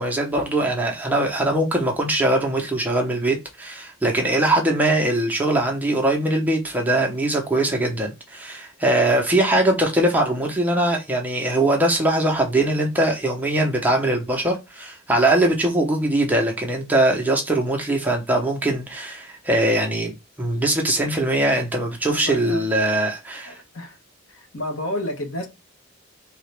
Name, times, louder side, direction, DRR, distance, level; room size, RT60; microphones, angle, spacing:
voice 1, 0.0-23.6, right 1 dB, 10° right, 0.7 m, -21 dB
voice 2, 22.1-22.6 23.5-24.0 24.3-25.5, left 1 dB, 65° left, 1.1 m, -31 dB
3.9 x 2.9 x 3.3 m
head